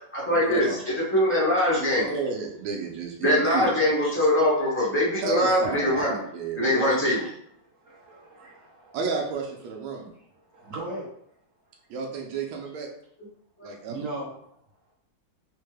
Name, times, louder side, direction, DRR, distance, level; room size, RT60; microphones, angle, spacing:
voice 1, 0.1-2.1 3.2-6.2 6.6-7.3 13.6-13.7, left 1 dB, 15° left, -7 dB, 0.4 m, -23 dB
voice 2, 1.9-3.8 5.2-7.0 8.9-10.1 11.9-12.9 13.6-14.0, right 5 dB, 85° right, 1 dB, 1.5 m, -32 dB
voice 3, 5.7-6.1 6.9-7.3 7.8-9.0 9.9-10.0 10.3-11.1 13.6-14.3, right 2 dB, 50° right, -5 dB, 1.1 m, -39 dB
4.2 x 2.2 x 3.2 m, 0.71 s
omnidirectional pair, 2.2 m